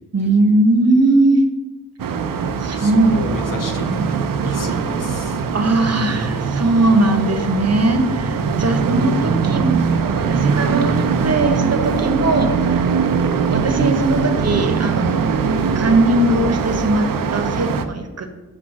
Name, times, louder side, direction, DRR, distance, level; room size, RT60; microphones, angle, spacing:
voice 1, 0.1-1.4 2.6-3.1 3.8-4.0 5.5-9.8 10.2-12.9 13.5-15.4 15.7-18.3, right 2 dB, 50° right, 6 dB, 1.1 m, -19 dB
sound 1, 2.0-17.9, right 5 dB, 90° right, 0.6 m, -21 dB
voice 2, 2.8-4.1 4.4-5.4 8.6-8.7, left 2 dB, 80° left, 2 dB, 1.3 m, -32 dB
6.3 x 4.8 x 5.9 m, 1.2 s
cardioid pair, 60°, 32 cm